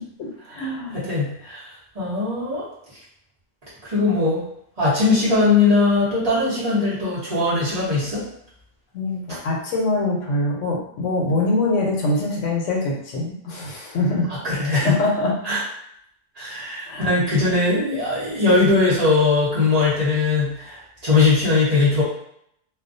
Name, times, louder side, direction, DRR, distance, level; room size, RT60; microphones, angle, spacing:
voice 1, 0.2-1.0 8.9-14.3 14.8-15.3 16.6-17.1, left 2 dB, 75° left, -1 dB, 1.0 m, -24 dB
voice 2, 0.9-1.7 1.9-2.7 3.8-4.4 4.8-8.2 14.4-14.9 15.4-15.6 16.4-22.0, left 3 dB, 35° right, -10 dB, 0.9 m, -20 dB
2.4 x 2.3 x 2.5 m, 0.72 s
omnidirectional pair, 1.3 m